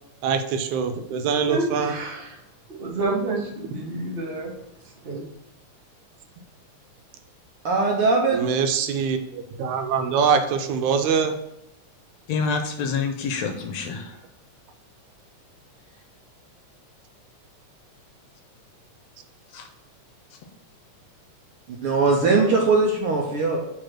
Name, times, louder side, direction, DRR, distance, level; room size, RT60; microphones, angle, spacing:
voice 1, 0.2-1.9 8.3-11.4, right 6 dB, 85° right, 7 dB, 2.1 m, -23 dB
voice 2, 1.4-2.3 2.7-4.5 5.0-5.3, right 2 dB, 50° right, -2 dB, 0.6 m, -29 dB
voice 3, 7.6-8.4 21.8-23.6, right 3 dB, 70° right, 0 dB, 1.4 m, -20 dB
voice 4, 12.3-14.2 19.5-19.7, left 5 dB, 75° left, 5 dB, 1.8 m, -27 dB
4.8 x 4.7 x 6.0 m, 0.82 s
omnidirectional pair, 3.4 m